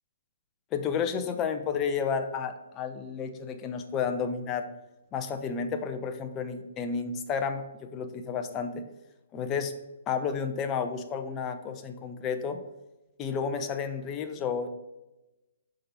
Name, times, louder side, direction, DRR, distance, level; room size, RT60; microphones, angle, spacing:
voice 1, 0.7-4.7 5.1-8.8 9.3-9.7 10.1-12.6 13.2-14.7, left 6 dB, 25° left, 7 dB, 0.7 m, -31 dB
6.6 x 5.4 x 4.1 m, 1.0 s
hypercardioid pair, 135°, 0 cm